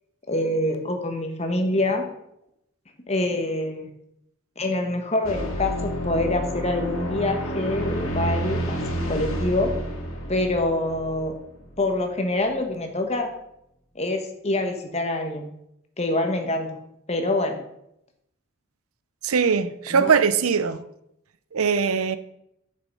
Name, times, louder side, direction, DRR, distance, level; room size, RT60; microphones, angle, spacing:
voice 1, 0.3-2.0 3.1-3.8 4.6-9.7 10.3-11.3 11.8-13.3 13.9-15.5 16.0-16.8 17.1-17.6 19.9-20.1, left 2 dB, 30° left, 1.3 m, -25 dB
sound 1, 5.2-11.9, equal, 75° left, 2.3 m, -29 dB
voice 2, 19.2-20.8 21.5-22.2, right 6 dB, 90° right, 0.6 m, -21 dB
9.1 x 6.8 x 5.4 m
head